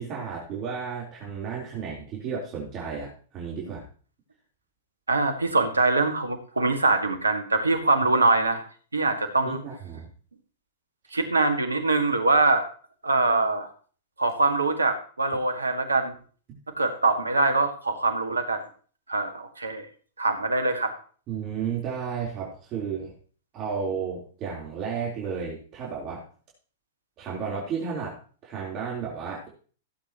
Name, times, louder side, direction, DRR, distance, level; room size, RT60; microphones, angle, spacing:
voice 1, 0.0-3.8 9.4-10.1 21.3-23.1 23.5-26.2 27.2-28.2 28.4-29.5, right 6 dB, 35° right, -4 dB, 3.9 m, -33 dB
voice 2, 5.1-8.6 8.9-9.6 11.1-12.7 13.0-13.7 14.2-16.1 16.8-18.6 19.1-19.9 20.2-20.9, right 3 dB, 90° right, 6 dB, 2.0 m, -23 dB
16.5 x 8.6 x 3.0 m, 0.42 s
hypercardioid pair, 105°, 0 cm